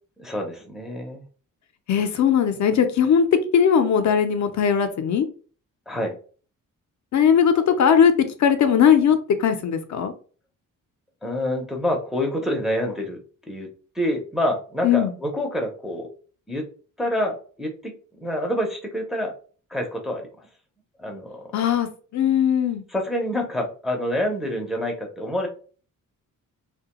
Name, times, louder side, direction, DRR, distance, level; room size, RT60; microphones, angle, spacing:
voice 1, 0.2-1.2 5.9-6.2 11.2-13.7 13.9-16.1 16.5-16.7 17.0-19.3 19.7-20.3 21.0-21.6 22.9-25.5, left 1 dB, ahead, 1 dB, 0.4 m, -27 dB
voice 2, 1.9-5.3 7.1-10.1 14.8-15.1 21.5-22.8, left 7 dB, 60° left, 7 dB, 0.5 m, -19 dB
2.7 x 2.2 x 2.8 m, 0.40 s
cardioid pair, 135°, 33 cm